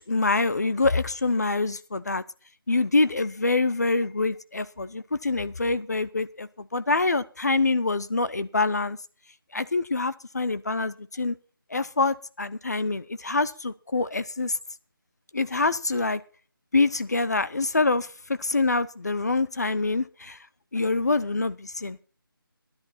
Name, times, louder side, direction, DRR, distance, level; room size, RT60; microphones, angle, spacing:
voice 1, 0.0-2.2 2.7-9.0 9.5-11.4 11.7-14.6 15.3-16.2 16.7-18.1 18.4-20.4 20.7-22.0, left 3 dB, 45° left, 0.6 m, -25 dB
11.5 x 10.5 x 5.8 m
figure-of-eight pair, 175°, 12 cm